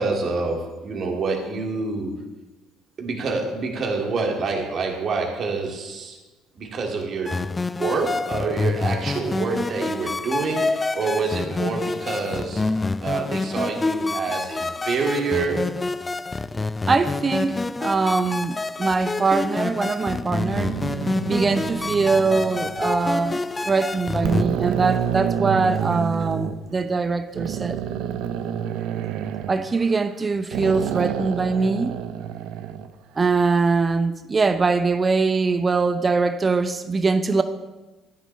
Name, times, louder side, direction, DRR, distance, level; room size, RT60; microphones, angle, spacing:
voice 1, 0.0-2.1 3.0-6.2 6.5-7.4 7.7-12.6 13.0-15.7, right 4 dB, 50° right, 1 dB, 2.5 m, -27 dB
sound 1, 7.3-24.4, left 3 dB, 25° left, 0.4 m, -27 dB
voice 2, 16.9-20.8 21.3-27.8 29.5-32.0 33.2-37.4, right 4 dB, 30° right, 10 dB, 0.7 m, -22 dB
sound 2, 20.3-23.1 23.7-23.8 24.2-26.5 27.3-30.2 30.5-32.9, right 9 dB, 70° right, 0.6 m, -29 dB
14.0 x 10.0 x 3.4 m, 1.1 s
hypercardioid pair, 55°, 0 cm